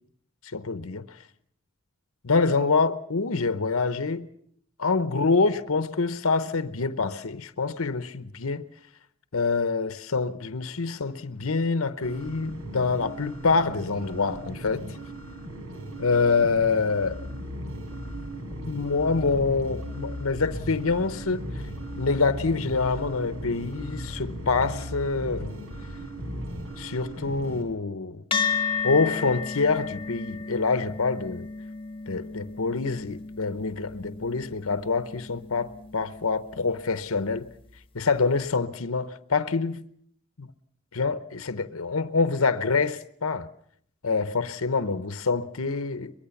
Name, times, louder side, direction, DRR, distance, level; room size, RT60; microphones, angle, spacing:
voice 1, 0.5-1.0 2.2-4.3 4.8-8.6 9.3-14.8 16.0-17.2 18.6-21.4 22.0-25.5 26.8-28.2 28.8-31.5 32.1-37.5 37.9-39.8 40.4-40.5 40.9-43.5 44.0-46.1, left 4 dB, 75° left, 0.9 m, -26 dB
sound 1, 12.0-27.6, right 2 dB, 80° right, 6.1 m, -39 dB
Bass guitar, 17.0-26.6, left 1 dB, 45° right, 6.8 m, -38 dB
sound 2, 28.3-37.0, left 5 dB, 25° left, 1.2 m, -33 dB
23.0 x 23.0 x 7.1 m
head